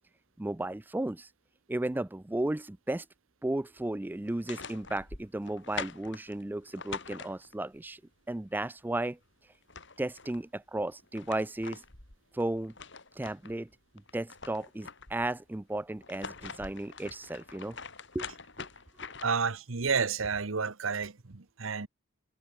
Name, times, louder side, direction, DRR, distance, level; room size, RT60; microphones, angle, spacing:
voice 1, 0.4-1.3 1.7-3.1 3.4-8.0 8.3-9.2 10.0-11.8 12.3-12.7 13.1-13.7 14.1-17.8 18.1-18.3 18.6-18.7, right 1 dB, 10° right, 0.3 m, -34 dB
sound 1, 4.2-7.8 9.2-9.3 9.5-10.4 10.9-13.6 14.0-15.3 15.9-19.5, left 5 dB, 60° left, 5.5 m, -44 dB
voice 2, 19.2-21.9, right 5 dB, 75° right, 1.1 m, -30 dB
head